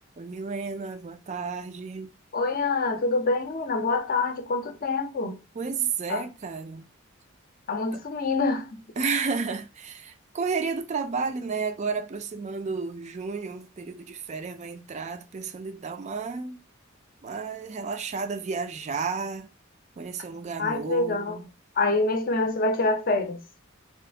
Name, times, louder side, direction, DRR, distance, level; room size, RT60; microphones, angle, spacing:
voice 1, 0.2-2.1 5.6-6.8 7.9-8.0 9.0-16.6 17.2-19.5 20.0-21.4, right 5 dB, 35° right, 0.3 m, -32 dB
voice 2, 2.3-5.4 6.1-6.2 7.7-8.8 20.6-21.4 21.8-23.4, left 3 dB, 45° left, 0.5 m, -26 dB
2.8 x 2.4 x 3.3 m
head